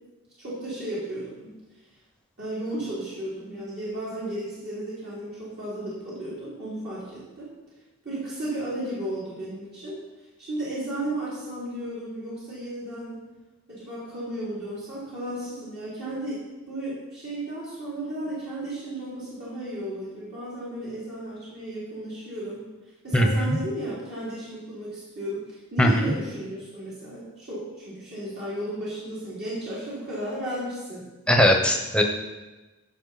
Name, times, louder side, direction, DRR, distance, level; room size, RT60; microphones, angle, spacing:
voice 1, 0.4-1.5 2.4-7.5 8.0-10.0 10.4-13.2 13.7-22.7 23.0-31.1, right 1 dB, 50° right, -9 dB, 3.1 m, -34 dB
voice 2, 23.1-23.6 25.8-25.9 31.3-32.0, equal, 5° left, 2 dB, 1.0 m, -19 dB
14.0 x 5.9 x 4.2 m, 1.1 s
head